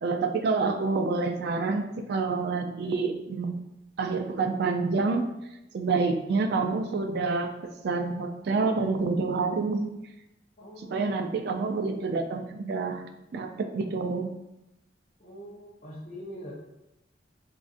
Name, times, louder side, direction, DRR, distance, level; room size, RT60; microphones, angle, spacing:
voice 1, 0.0-3.6 4.0-5.3 5.7-7.5 7.8-9.9 10.8-13.0 13.3-14.3, right 4 dB, 60° right, 5 dB, 0.3 m, -27 dB
voice 2, 10.6-11.3 15.2-16.5, equal, 45° left, -8 dB, 0.7 m, -43 dB
3.7 x 2.5 x 2.4 m, 0.91 s
head